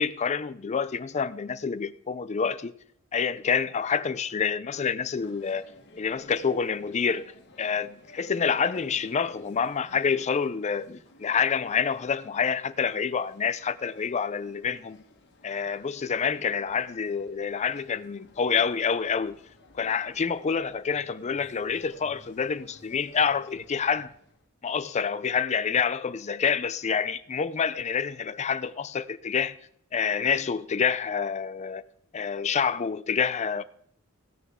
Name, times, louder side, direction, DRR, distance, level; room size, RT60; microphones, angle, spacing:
voice 1, 0.0-2.7 3.1-5.6 6.0-7.3 7.6-15.0 15.4-19.4 19.7-24.1 24.6-29.6 29.9-31.8 32.1-33.6, left 6 dB, 30° left, 0.4 m, -27 dB
sound 1, 5.1-24.5, left 2 dB, 55° left, 1.6 m, -55 dB
15.5 x 9.9 x 3.6 m
head